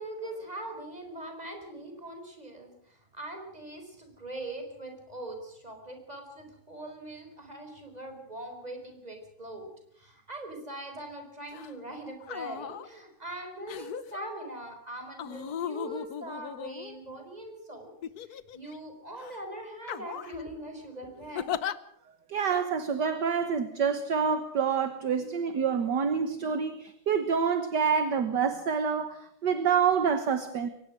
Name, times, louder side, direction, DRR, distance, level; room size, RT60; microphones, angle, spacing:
voice 1, 0.0-9.7 9.9-17.9 18.3-21.5, right 1 dB, 20° right, 5 dB, 5.0 m, -41 dB
sound 1, 11.5-11.7 12.2-12.9 13.7-14.2 15.2-17.2 18.0-18.8 19.2-19.4 19.8-20.4 21.3-21.7 22.5-22.6, left 9 dB, 55° left, 1.3 m, -37 dB
voice 2, 22.3-30.7, right 6 dB, 55° right, 10 dB, 1.8 m, -27 dB
23.0 x 19.5 x 6.2 m, 0.72 s
omnidirectional pair, 2.3 m